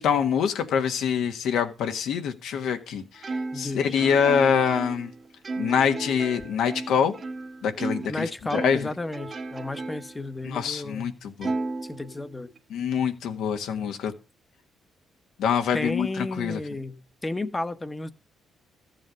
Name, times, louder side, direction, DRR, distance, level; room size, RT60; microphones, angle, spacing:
voice 1, 0.0-5.1 5.6-7.1 7.6-8.9 10.4-11.5 12.7-14.1 15.4-16.6, left 7 dB, 80° left, 1.6 m, -25 dB
Plucked string instrument, 3.2-8.2 8.5-10.2 10.6-10.7 11.4-12.6, right 3 dB, 40° right, 1.5 m, -34 dB
voice 2, 3.5-4.0 8.1-11.2 11.8-12.5 15.7-18.1, left 2 dB, 20° left, 1.1 m, -33 dB
14.0 x 7.7 x 5.2 m
cardioid pair, 90°, 0 cm